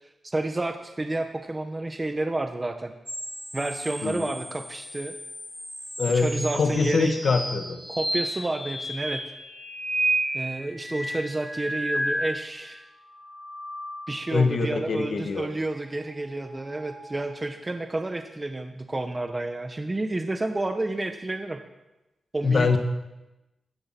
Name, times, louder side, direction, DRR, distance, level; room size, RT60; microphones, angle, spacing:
voice 1, 0.0-2.9 3.5-5.1 6.1-7.2 7.9-9.2 10.3-12.8 14.1-21.6 22.3-22.8, right 2 dB, 25° right, 6 dB, 1.2 m, -30 dB
sound 1, 3.1-12.6 13.1-14.4 16.2-17.4, right 1 dB, 10° left, 4.2 m, -33 dB
voice 2, 4.0-4.3 6.0-7.8 14.3-15.5 22.4-22.8, left 4 dB, 60° left, 6 dB, 2.0 m, -24 dB
15.5 x 14.5 x 6.1 m, 1.0 s
wide cardioid pair, 95°, 0 cm